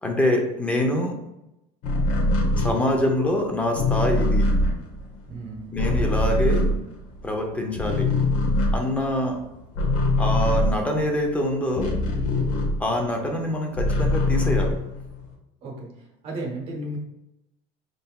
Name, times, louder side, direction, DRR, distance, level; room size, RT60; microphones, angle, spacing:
voice 1, 0.0-1.2 2.6-4.5 5.7-6.7 7.2-8.1 8.7-9.4 10.2-12.0 12.8-14.8, left 1 dB, 10° left, 2 dB, 0.6 m, -25 dB
sound 1, 1.8-7.4 7.7-13.2 13.5-15.3, left 1 dB, 50° left, 0.9 m, -23 dB
voice 2, 5.3-5.8 15.6-17.0, right 1 dB, 35° right, -1 dB, 1.0 m, -34 dB
5.3 x 3.8 x 2.3 m, 0.88 s
cardioid pair, 165°, 16 cm